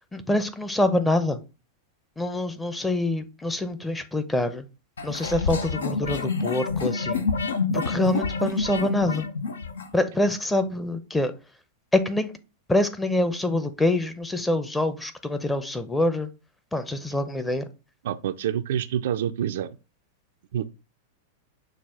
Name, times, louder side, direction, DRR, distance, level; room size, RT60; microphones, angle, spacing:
voice 1, 0.1-1.4 2.2-4.7 5.0-7.3 7.7-9.3 9.9-11.3 11.9-12.3 12.7-16.3 16.7-17.7, left 1 dB, 10° left, 0.6 m, -25 dB
sound 1, 5.0-9.9, left 4 dB, 75° left, 0.5 m, -28 dB
voice 2, 18.0-19.8 20.5-20.7, right 9 dB, 60° right, 0.3 m, -27 dB
6.2 x 2.4 x 3.5 m
figure-of-eight pair, 95°, 0 cm